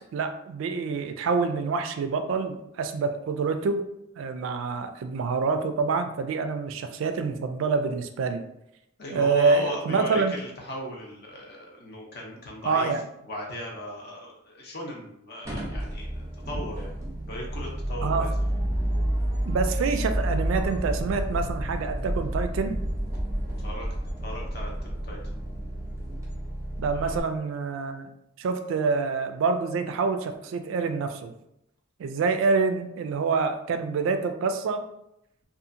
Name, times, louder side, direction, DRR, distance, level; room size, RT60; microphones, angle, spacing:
voice 1, 0.1-3.8 4.2-8.4 9.1-10.3 12.6-13.0 18.0-18.3 19.4-22.8 26.8-28.1 28.4-31.3 32.0-34.8, right 4 dB, 75° right, 8 dB, 0.3 m, -26 dB
voice 2, 9.0-12.9 13.3-16.9 17.3-18.3 23.6-23.9 24.2-24.7 25.0-25.2 26.9-27.2, left 1 dB, 50° left, -1 dB, 0.6 m, -37 dB
sound 1, 15.4-27.2, right 1 dB, 15° right, 0.6 m, -30 dB
2.7 x 2.4 x 2.5 m, 0.80 s
head